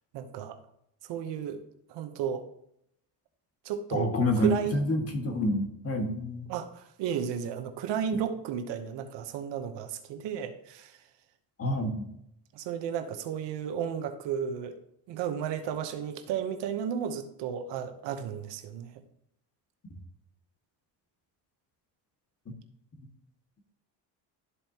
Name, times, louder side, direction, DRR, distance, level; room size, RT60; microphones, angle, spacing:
voice 1, 0.1-0.6 1.1-1.6 1.9-2.5 3.6-4.1 4.4-4.8 6.5-11.1 12.5-14.8 15.1-19.0, right 8 dB, 75° right, 8 dB, 1.0 m, -33 dB
voice 2, 3.9-6.5 11.6-12.1 23.0-23.1, left 1 dB, 35° left, 4 dB, 1.8 m, -28 dB
12.5 x 4.4 x 2.9 m, 0.75 s
supercardioid pair, 85°, 43 cm